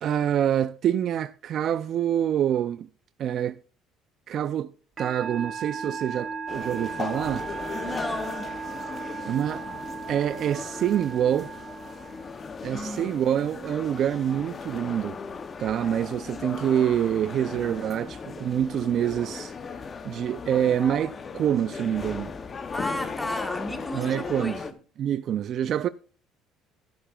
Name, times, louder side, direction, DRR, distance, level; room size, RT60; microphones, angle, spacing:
voice 1, 0.0-2.9 3.2-3.6 4.3-4.7 5.0-7.5 9.3-9.6 10.1-11.5 12.6-15.2 15.6-19.5 20.0-22.3 23.9-24.5 25.0-25.9, right 10 dB, 45° right, 0.3 m, -26 dB
Musical instrument, 5.0-12.6, right 5 dB, 25° right, 2.4 m, -37 dB
sound 1, 6.5-24.7, left 5 dB, 25° left, 0.7 m, -37 dB
voice 2, 7.7-8.6 12.7-13.1 22.7-24.7, left 1 dB, 5° left, 1.2 m, -34 dB
13.5 x 11.5 x 2.3 m
cardioid pair, 155°, 0 cm